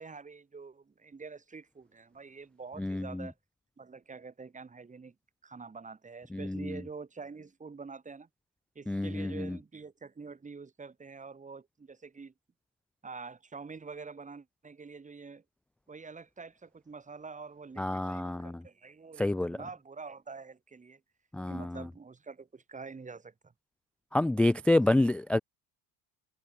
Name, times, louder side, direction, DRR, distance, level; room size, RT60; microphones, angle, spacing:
voice 1, 0.0-3.3 3.8-5.1 5.4-8.3 8.7-12.3 13.0-15.4 15.9-21.0 21.5-23.5, right 4 dB, 15° right, 7.9 m, -46 dB
voice 2, 2.8-3.3 6.3-6.8 8.9-9.6 17.8-18.6 19.2-19.6 21.3-21.8 24.1-25.4, left 1 dB, 5° left, 0.3 m, -28 dB
cardioid pair, 150°, 46 cm